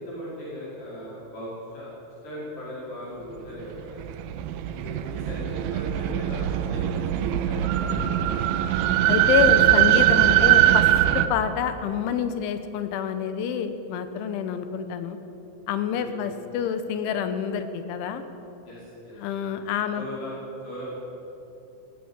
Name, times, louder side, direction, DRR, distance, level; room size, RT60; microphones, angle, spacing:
voice 1, 0.0-1.9 2.2-4.0 4.7-8.4 15.9-16.4 18.7-19.2 19.9-20.3 20.6-20.8, left 1 dB, 50° left, -7 dB, 7.1 m, -38 dB
sound 1, 3.8-11.3, right 13 dB, 80° right, 2.9 m, -21 dB
voice 2, 9.1-10.9 11.1-15.2 15.7-18.2 19.2-20.0, left 7 dB, 75° left, 9 dB, 3.2 m, -27 dB
18.0 x 16.0 x 9.7 m, 2.9 s
omnidirectional pair, 6.0 m